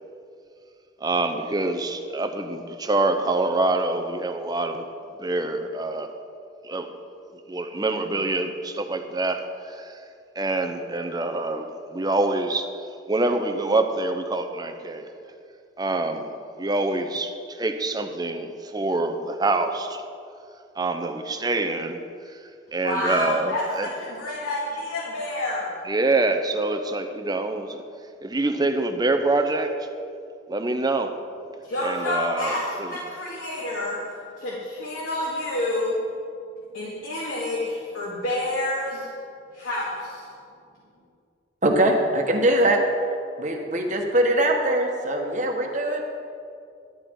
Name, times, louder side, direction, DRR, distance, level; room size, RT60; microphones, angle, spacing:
voice 1, 1.0-4.9 5.2-6.1 6.6-6.9 7.5-10.0 10.4-11.7 11.9-12.7 13.1-15.0 15.8-16.3 16.6-20.0 20.8-22.0 22.7-23.9 25.9-27.8 28.2-29.7 30.5-31.1 31.8-32.5 32.8-33.0, right 2 dB, 20° right, 7 dB, 0.7 m, -25 dB
voice 2, 22.8-25.7 31.6-34.0 34.4-35.9 36.7-39.1 39.5-40.3, left 1 dB, 90° left, -7 dB, 2.4 m, -29 dB
voice 3, 41.6-42.8 43.4-46.0, right 1 dB, 40° right, 2 dB, 1.4 m, -22 dB
12.0 x 11.0 x 4.7 m, 2.5 s
head